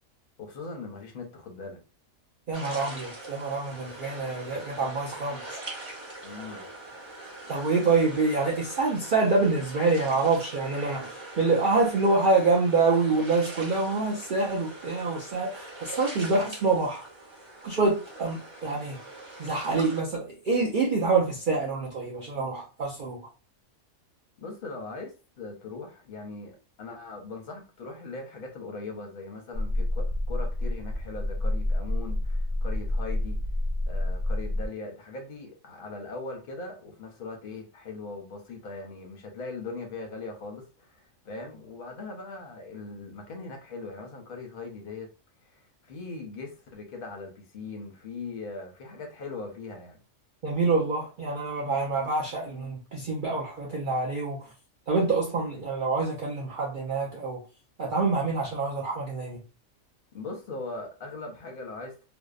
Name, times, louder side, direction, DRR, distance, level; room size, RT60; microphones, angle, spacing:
voice 1, 0.4-1.8 6.2-6.7 24.4-33.4 33.9-45.1 45.5-50.0 60.1-62.0, left 3 dB, 55° left, 0.7 m, -40 dB
sound 1, 2.5-20.0, right 2 dB, 30° right, 0.6 m, -42 dB
voice 2, 2.5-5.6 7.5-17.1 17.6-19.0 19.4-23.2 50.4-54.5 54.9-57.4 57.8-59.4, right 3 dB, 70° right, 0.4 m, -26 dB
sound 2, 29.5-34.7, left 1 dB, 90° right, 1.2 m, -28 dB
2.6 x 2.0 x 2.3 m
omnidirectional pair, 1.4 m